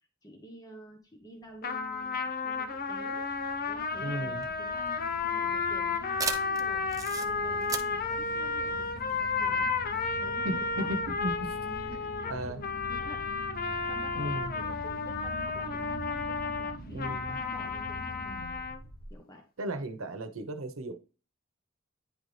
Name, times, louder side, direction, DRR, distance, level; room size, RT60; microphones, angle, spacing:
voice 1, 0.2-3.2 3.7-6.9 7.3-9.7 10.2-11.0 11.6-12.6 12.9-13.3 13.9-18.6 19.1-19.5, equal, 20° left, 1.1 m, -49 dB
sound 1, 1.6-19.2, right 1 dB, 85° left, 1.4 m, -45 dB
sound 2, 1.6-18.8, left 4 dB, 45° left, 0.6 m, -32 dB
voice 2, 4.0-4.4 10.4-11.6 11.9-12.0 12.3-12.6 14.2-14.5 16.9-17.4 19.6-20.9, right 1 dB, 80° right, 0.9 m, -35 dB
sound 3, 4.3-9.4, right 5 dB, 15° right, 0.7 m, -38 dB
9.7 x 4.0 x 3.3 m
head